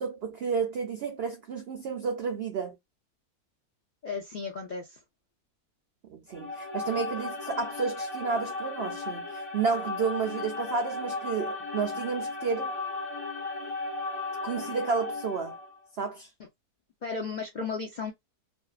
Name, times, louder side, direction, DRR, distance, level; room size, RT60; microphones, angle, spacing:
voice 1, 0.0-2.7 6.1-12.7 14.4-15.5 16.0-16.3, right 5 dB, 80° right, 0.5 m, -31 dB
voice 2, 4.0-5.0 17.0-18.1, left 4 dB, 70° left, 0.4 m, -34 dB
sound 1, 6.3-15.8, left 3 dB, 20° left, 1.1 m, -35 dB
2.6 x 2.3 x 2.3 m
omnidirectional pair, 1.7 m